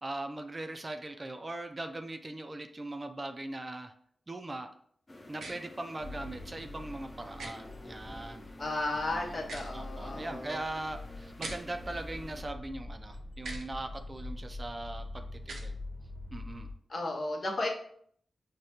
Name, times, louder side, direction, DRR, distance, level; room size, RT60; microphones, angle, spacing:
voice 1, 0.0-3.9 4.3-4.7 5.3-8.5 9.1-9.4 9.7-15.8 16.3-16.7, right 2 dB, 35° right, 6 dB, 0.4 m, -40 dB
sound 1, 5.1-12.4, left 1 dB, 35° left, 0.6 m, -50 dB
sound 2, 5.4-5.5 7.4-7.5 9.4-9.7 11.4-11.6 13.4-13.7 15.4-15.7, right 3 dB, 80° right, 0.5 m, -41 dB
sound 3, 6.0-16.7, left 2 dB, 10° right, 0.8 m, -44 dB
voice 2, 8.6-10.6 16.9-17.7, left 2 dB, 60° left, 0 dB, 0.8 m, -34 dB
4.9 x 2.2 x 2.8 m, 0.63 s
cardioid pair, 50°, 0 cm